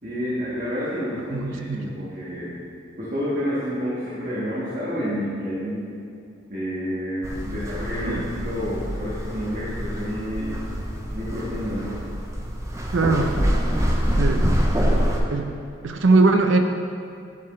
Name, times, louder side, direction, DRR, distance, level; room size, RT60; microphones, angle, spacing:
voice 1, 0.0-2.6 3.0-6.0 6.5-10.6 11.1-12.0, equal, 40° right, -10 dB, 1.4 m, -29 dB
voice 2, 1.3-1.8 8.1-8.3 12.9-13.3 14.1-14.5 15.3-15.5 15.8-16.6, right 3 dB, 70° right, 5 dB, 0.5 m, -20 dB
sound 1, 7.2-15.2, equal, 15° right, 0.5 m, -25 dB
10.5 x 4.7 x 3.2 m, 2.5 s
head